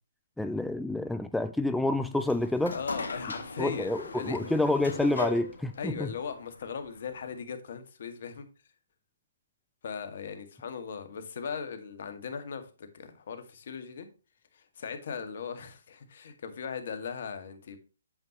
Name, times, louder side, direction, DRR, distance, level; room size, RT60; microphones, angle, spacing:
voice 1, 0.4-2.8 3.6-6.1, left 2 dB, 5° left, 0.4 m, -28 dB
sound 1, 2.1-7.4, left 3 dB, 75° left, 2.0 m, -39 dB
voice 2, 2.7-4.5 5.8-8.5 9.8-14.1 14.5-17.8, left 6 dB, 55° left, 1.9 m, -38 dB
8.9 x 7.7 x 3.0 m
hypercardioid pair, 140°, 0 cm